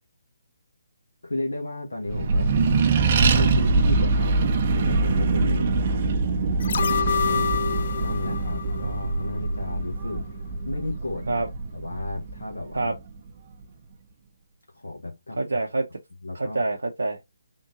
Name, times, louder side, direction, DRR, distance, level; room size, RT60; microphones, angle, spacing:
voice 1, 1.2-2.5 3.3-6.2 6.6-6.8 8.0-10.3 10.6-11.4 11.7-13.0 14.7-15.4 16.2-16.6, left 2 dB, 75° left, 1.2 m, -33 dB
Accelerating revving vroom, 2.1-13.0, right 3 dB, 35° right, 0.7 m, -24 dB
voice 2, 5.4-5.9 7.3-7.5 11.3-11.5 12.7-12.9 15.4-15.9 16.3-17.2, right 3 dB, 70° right, 0.7 m, -27 dB
sound 1, 6.6-9.7 10.1-10.2, left 7 dB, 50° left, 0.4 m, -28 dB
3.7 x 2.7 x 3.7 m
figure-of-eight pair, 140°, 0 cm